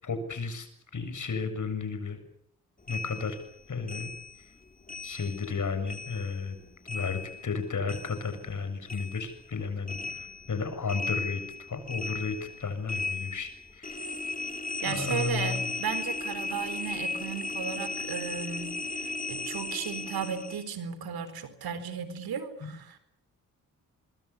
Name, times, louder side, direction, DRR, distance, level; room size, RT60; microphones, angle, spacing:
voice 1, 0.0-2.2 2.9-3.4 3.7-4.1 4.4-4.5 5.0-6.6 6.9-11.4 11.7-14.1 14.8-15.7 22.6-22.7, left 5 dB, 55° left, 9 dB, 7.2 m, -33 dB
sound 1, 2.9-5.6 5.9-8.6 8.9-20.7, left 2 dB, 25° left, 3.5 m, -36 dB
voice 2, 14.8-23.0, right 7 dB, 85° right, 12 dB, 4.3 m, -35 dB
24.0 x 24.0 x 8.5 m, 0.67 s
cardioid pair, 60°, 36 cm